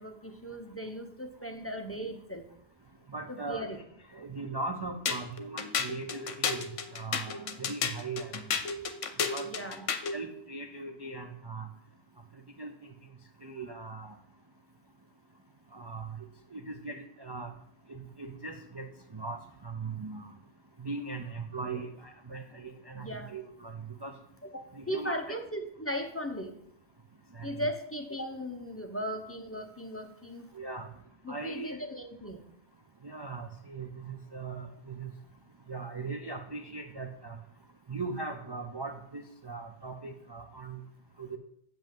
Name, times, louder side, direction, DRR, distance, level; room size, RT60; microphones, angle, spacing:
voice 1, 0.0-2.4 3.3-3.8 9.4-9.8 22.9-23.3 24.5-26.5 27.4-30.5 31.2-32.4, equal, 15° left, 4 dB, 0.7 m, -37 dB
voice 2, 3.1-3.7 4.1-6.7 6.9-8.3 9.3-9.9 10.1-11.7 12.6-12.9 13.4-14.1 15.7-16.1 16.5-17.5 17.9-18.9 19.1-20.3 20.8-24.1 24.7-25.4 27.3-27.5 30.5-30.9 31.3-31.8 33.0-35.1 35.7-37.4 37.9-40.8 41.2-41.4, right 3 dB, 45° right, 4 dB, 0.3 m, -39 dB
sound 1, 5.0-10.2, left 6 dB, 70° left, 1.2 m, -32 dB
7.5 x 5.4 x 7.5 m, 0.71 s
omnidirectional pair, 1.4 m